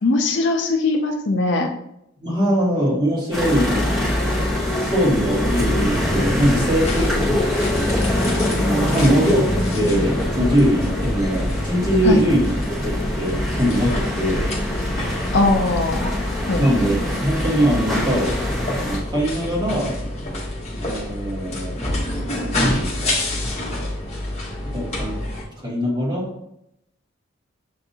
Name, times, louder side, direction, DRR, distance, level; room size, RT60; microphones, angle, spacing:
voice 1, 0.0-1.7 12.0-12.2 15.3-16.1 16.5-16.6, left 2 dB, 60° left, 3 dB, 0.5 m, -20 dB
voice 2, 2.2-3.9 4.8-7.6 8.4-12.5 12.8-14.4 16.6-18.4 18.8-19.9 20.8-21.8 22.6-23.2 24.7-25.2 25.6-26.3, equal, 20° right, -6 dB, 1.4 m, -22 dB
sound 1, 3.3-19.0, left 1 dB, 5° right, 1.0 m, -24 dB
sound 2, 6.0-25.4, left 1 dB, 30° left, 0.9 m, -28 dB
6.7 x 2.6 x 2.7 m, 0.79 s
head